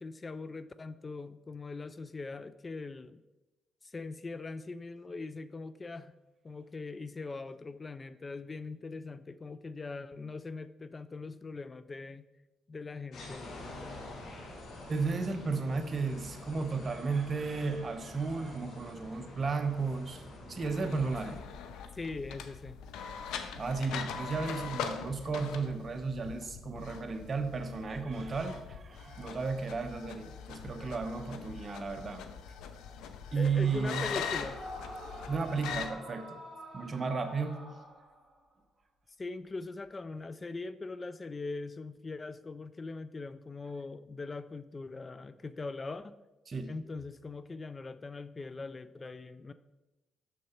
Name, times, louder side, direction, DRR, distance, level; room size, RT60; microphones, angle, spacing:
voice 1, 0.0-3.2 3.8-6.1 6.4-12.3 12.7-13.5 21.9-22.8 33.4-34.6 39.2-46.1 46.7-49.5, left 3 dB, 30° left, 14 dB, 0.3 m, -41 dB
sound 1, 13.1-21.4, left 2 dB, 65° left, 1.7 m, -47 dB
voice 2, 14.9-21.4 23.6-32.2 33.3-34.1 35.3-36.4 36.7-37.6 46.5-46.7 49.0-49.1, right 4 dB, 40° right, 7 dB, 0.9 m, -34 dB
sound 2, 20.6-35.9, left 7 dB, 90° left, 0.6 m, -42 dB
Yell / Screaming, 33.5-38.4, equal, 5° right, 3.0 m, -46 dB
6.6 x 6.2 x 4.4 m, 1.0 s
cardioid pair, 90°, 0 cm